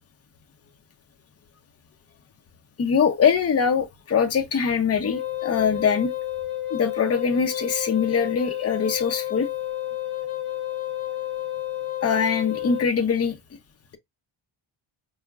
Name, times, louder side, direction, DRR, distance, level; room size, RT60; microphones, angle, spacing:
voice 1, 2.8-6.1 6.7-9.5 12.0-13.4, left 6 dB, 30° left, 0.6 m, -23 dB
Wind instrument woodwind instrument, 5.0-12.9, left 13 dB, 60° left, 0.8 m, -30 dB
4.7 x 2.1 x 3.4 m
wide cardioid pair, 175°, 49 cm